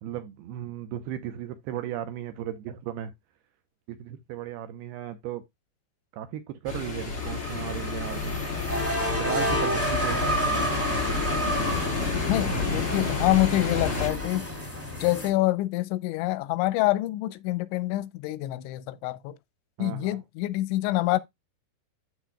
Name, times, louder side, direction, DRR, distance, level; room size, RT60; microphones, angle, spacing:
voice 1, 0.0-3.1 3.9-5.4 6.1-8.4 9.2-10.8 19.8-20.2, right 11 dB, 80° right, 2.4 m, -36 dB
sound 1, 6.6-14.1, left 5 dB, 30° left, 1.3 m, -30 dB
sound 2, 7.2-15.3, equal, 15° right, 0.5 m, -30 dB
voice 2, 12.3-14.5 15.0-19.4 19.8-21.2, left 17 dB, 90° left, 3.0 m, -26 dB
12.5 x 4.3 x 2.3 m
omnidirectional pair, 5.2 m